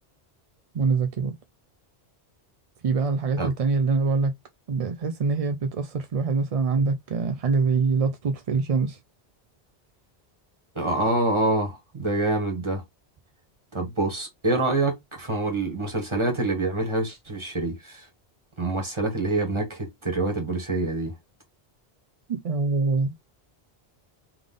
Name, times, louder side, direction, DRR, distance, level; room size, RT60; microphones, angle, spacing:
voice 1, 0.7-1.4 2.8-4.3 4.7-9.0 22.3-23.1, right 4 dB, 50° right, 0.4 m, -24 dB
voice 2, 10.7-12.8 13.7-18.1 18.6-21.1, right 2 dB, 30° right, 1.6 m, -26 dB
3.5 x 3.4 x 3.7 m
omnidirectional pair, 1.1 m